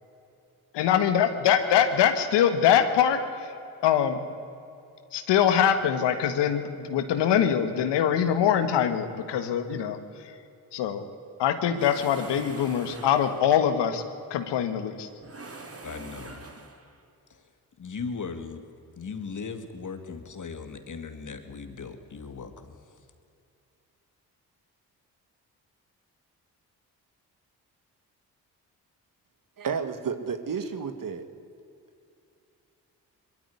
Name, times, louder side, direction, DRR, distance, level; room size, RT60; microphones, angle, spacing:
voice 1, 0.7-3.5 3.8-4.2 5.1-10.3 10.7-11.0 11.4-14.0 14.3-15.1, left 9 dB, 80° left, 8 dB, 1.6 m, -23 dB
sound 1, 11.8-13.6 15.2-17.0, right 3 dB, 35° right, 2.9 m, -43 dB
voice 2, 15.8-16.4 17.3-17.4 17.8-18.6 19.0-22.8, left 5 dB, 45° left, 8 dB, 2.4 m, -38 dB
voice 3, 29.6-31.3, right 6 dB, 50° right, 9 dB, 2.0 m, -31 dB
22.0 x 13.5 x 9.7 m, 2.7 s
supercardioid pair, 50°, 41 cm